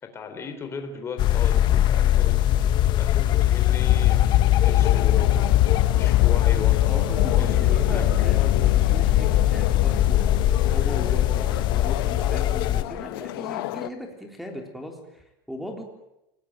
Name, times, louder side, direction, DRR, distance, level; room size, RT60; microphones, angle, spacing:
voice 1, 0.0-2.4 3.0-5.5 5.9-8.3, left 5 dB, 20° left, 5 dB, 4.1 m, -37 dB
sound 1, 1.2-12.8, left 12 dB, 40° left, 1.4 m, -21 dB
sound 2, 3.8-10.5, left 18 dB, 55° left, 3.6 m, -25 dB
sound 3, 4.8-13.9, left 15 dB, 80° left, 1.3 m, -34 dB
voice 2, 6.8-10.2 10.7-15.8, equal, ahead, 3 dB, 3.8 m, -38 dB
28.5 x 20.0 x 9.1 m, 0.91 s
supercardioid pair, 150°, 12 cm